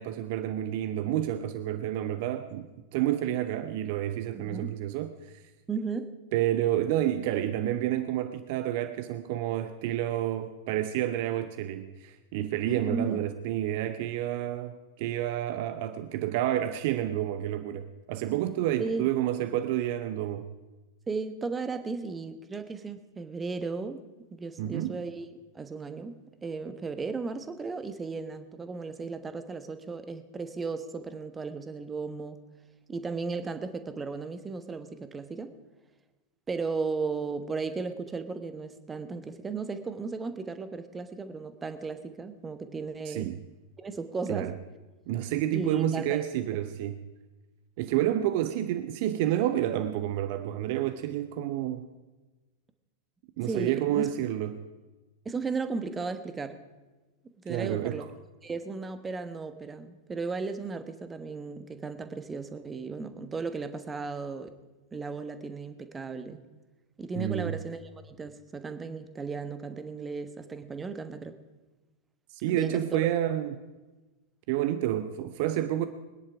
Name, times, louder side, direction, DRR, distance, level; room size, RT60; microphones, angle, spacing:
voice 1, 0.0-2.7 2.9-5.1 6.3-20.5 24.6-25.0 43.1-43.4 44.3-44.6 45.1-47.0 47.8-51.9 53.4-54.6 57.5-58.1 67.2-67.5 72.3-73.6 74.5-75.8, right 12 dB, 50° right, 10 dB, 0.7 m, -29 dB
voice 2, 4.3-4.7 5.7-6.1 12.7-13.2 18.8-19.1 21.1-24.0 24.3-32.4 32.9-35.5 36.5-43.3 43.8-44.5 45.5-46.2 53.4-54.1 55.2-56.6 57.4-58.0 58.4-64.5 64.9-66.4 67.0-71.4 72.5-73.1, right 4 dB, 15° right, 9 dB, 1.2 m, -35 dB
22.0 x 10.0 x 5.0 m, 1.2 s
figure-of-eight pair, 90°, 0 cm